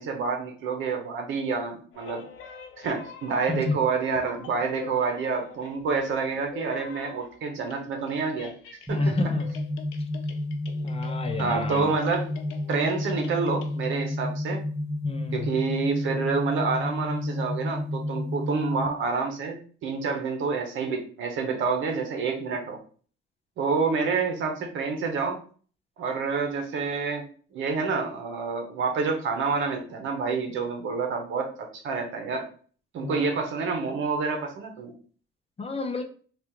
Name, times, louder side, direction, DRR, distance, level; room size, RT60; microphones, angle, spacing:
voice 1, 0.0-2.2 2.8-8.5 8.9-9.2 11.4-12.3 12.7-14.6 15.3-22.8 23.6-25.4 26.0-27.3 27.5-32.5 32.9-34.9, right 4 dB, 75° right, 3 dB, 0.8 m, -28 dB
sound 1, 1.9-3.9 4.1-7.4 7.6-13.9, left 6 dB, 85° left, 0.6 m, -45 dB
voice 2, 8.9-9.5 10.8-11.9 15.0-15.5 33.0-33.2 35.6-36.0, left 3 dB, 30° left, 5 dB, 0.6 m, -30 dB
sound 2, 8.9-18.9, left 1 dB, 10° right, 0.6 m, -31 dB
2.8 x 2.4 x 3.6 m, 0.43 s
cardioid pair, 90°, 20 cm